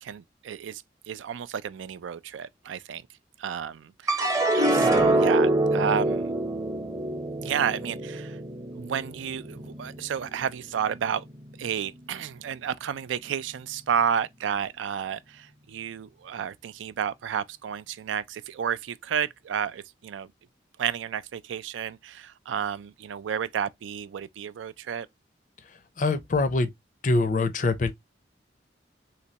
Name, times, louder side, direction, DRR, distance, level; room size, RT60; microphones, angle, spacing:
voice 1, 0.0-3.0 3.4-4.3 4.7-6.3 7.4-8.4 8.7-11.3 11.6-20.3 20.8-25.1, right 8 dB, 90° right, 0.3 m, -31 dB
sound 1, 4.1-10.5 11.0-11.6, right 2 dB, 15° right, 0.6 m, -26 dB
voice 2, 26.0-26.7 27.0-27.9, left 3 dB, 45° left, 0.5 m, -24 dB
3.2 x 3.0 x 2.7 m
head